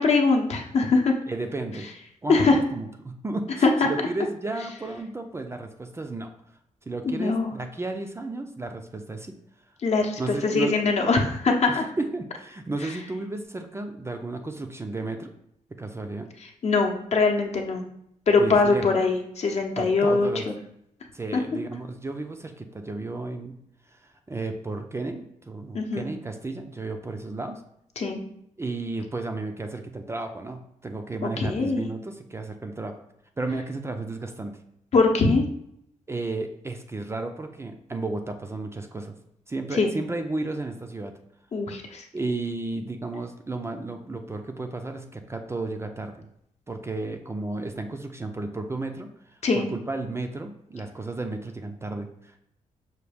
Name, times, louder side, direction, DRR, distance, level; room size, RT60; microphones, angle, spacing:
voice 1, 0.0-1.1 2.3-2.6 3.6-3.7 7.0-7.5 9.8-11.9 16.6-17.8 18.3-20.3 25.7-26.1 28.0-28.2 31.2-31.9 34.9-35.4 39.7-39.9 41.5-42.0 49.4-49.7, left 3 dB, 55° left, 2 dB, 0.7 m, -22 dB
voice 2, 1.3-1.9 2.2-6.3 6.9-9.4 10.2-10.9 11.7-15.3 15.8-16.3 18.4-19.0 19.8-20.5 21.1-23.5 23.9-27.6 28.6-33.0 33.4-34.6 36.1-39.2 39.5-41.1 42.1-46.3 46.7-52.3, right 2 dB, 20° right, 5 dB, 0.4 m, -33 dB
5.7 x 2.3 x 3.3 m, 0.76 s
cardioid pair, 105°, 13 cm